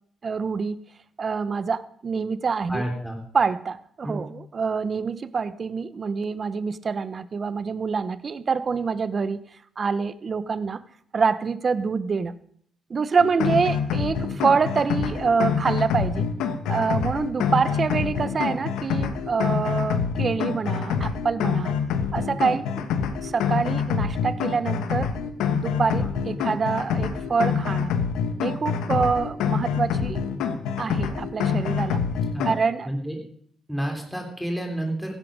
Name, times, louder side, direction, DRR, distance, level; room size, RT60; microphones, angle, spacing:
voice 1, 0.2-0.8 1.2-2.8 3.3-9.4 9.8-10.8 11.1-12.3 12.9-16.2 16.7-21.7 22.1-22.9 23.2-25.1 25.5-28.0 28.4-30.2 30.8-32.0 32.4-32.9, right 5 dB, 40° right, 15 dB, 0.9 m, -26 dB
voice 2, 2.7-3.2 4.0-4.2 26.0-26.1 32.3-32.6 32.8-33.2 33.7-35.1, right 1 dB, ahead, 2 dB, 3.4 m, -30 dB
sound 1, 13.2-32.5, left 6 dB, 90° left, 1.4 m, -26 dB
15.5 x 11.0 x 5.2 m, 0.63 s
cardioid pair, 90°, 0 cm